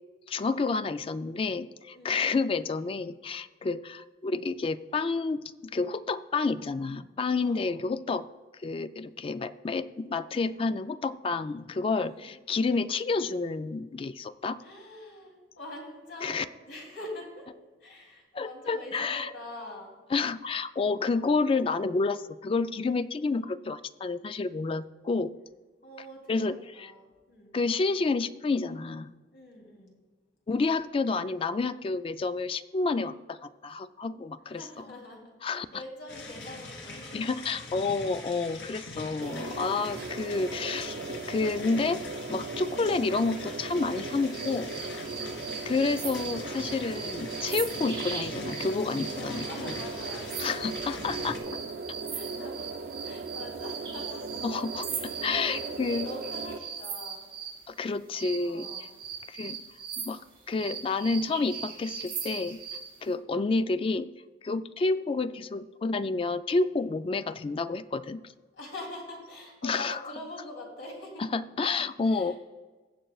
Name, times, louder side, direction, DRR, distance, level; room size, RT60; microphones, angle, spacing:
voice 1, 0.3-8.2 8.6-14.6 16.2-16.5 18.3-19.3 20.1-25.3 26.3-26.9 27.5-29.1 30.5-34.8 35.4-35.7 37.1-42.0 42.3-44.7 45.7-49.7 50.4-51.3 54.4-56.1 57.7-58.7 59.3-59.6 60.0-60.2 60.5-62.6 63.0-64.1 64.4-68.3 69.6-70.0 71.3-72.4, left 3 dB, 30° left, 13 dB, 0.3 m, -29 dB
voice 2, 1.9-2.3 7.3-7.8 11.9-12.4 14.6-17.5 17.8-19.9 25.8-27.6 29.3-30.0 34.4-37.3 38.5-38.7 45.0-45.5 46.4-46.9 49.1-50.7 51.1-51.6 52.1-52.7 53.0-54.4 54.9-57.3 58.4-59.0 61.8-62.1 63.0-63.3 68.5-71.3 72.0-72.4, left 1 dB, 65° left, -1 dB, 3.0 m, -44 dB
sound 1, 36.1-51.4, left 2 dB, 85° left, 2.2 m, -43 dB
sound 2, 39.2-56.6, right 3 dB, 60° right, 0.4 m, -38 dB
sound 3, 44.3-57.6 58.1-62.9, right 6 dB, 30° right, 3.5 m, -39 dB
19.5 x 7.5 x 2.3 m, 1.3 s
head